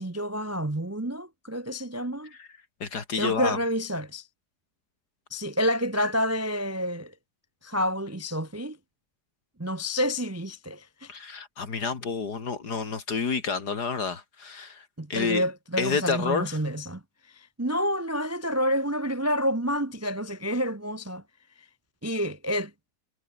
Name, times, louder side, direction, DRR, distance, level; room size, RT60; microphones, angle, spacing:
voice 1, 0.0-2.3 3.2-4.3 5.3-7.1 7.6-8.8 9.6-11.1 15.0-17.0 17.3-21.2 22.0-22.7, equal, 15° right, 0.6 m, -29 dB
voice 2, 2.8-3.6 11.1-15.4 15.8-16.6, left 5 dB, 65° left, 3.0 m, -29 dB
omnidirectional pair, 1.9 m